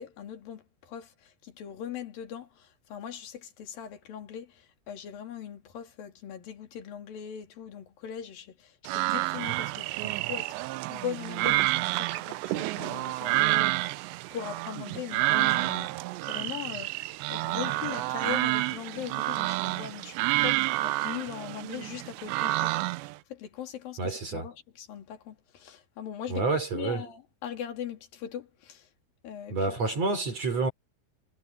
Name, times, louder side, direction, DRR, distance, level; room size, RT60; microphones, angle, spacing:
voice 1, 0.0-17.0 17.3-28.9 29.2-29.9, left 9 dB, 50° left, 4.0 m, -40 dB
sound 1, 8.9-23.1, right 19 dB, 90° right, 2.5 m, -29 dB
voice 2, 24.0-24.5 26.3-27.0 29.5-30.7, right 3 dB, 35° right, 4.4 m, -28 dB
omnidirectional pair, 5.7 m